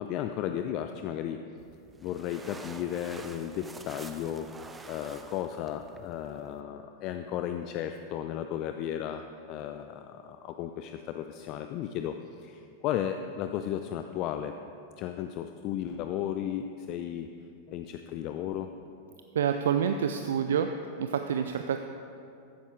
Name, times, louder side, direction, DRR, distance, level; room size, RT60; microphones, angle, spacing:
voice 1, 0.0-1.4 2.0-4.5 4.9-14.5 15.0-17.3 17.7-18.7, left 10 dB, 40° left, 7 dB, 0.5 m, -34 dB
sound 1, 1.6-6.6, right 3 dB, 15° right, 0.7 m, -48 dB
voice 2, 19.3-20.7 21.0-21.8, right 8 dB, 60° right, 7 dB, 0.5 m, -27 dB
15.0 x 12.5 x 3.7 m, 2.6 s
figure-of-eight pair, 90°, 0 cm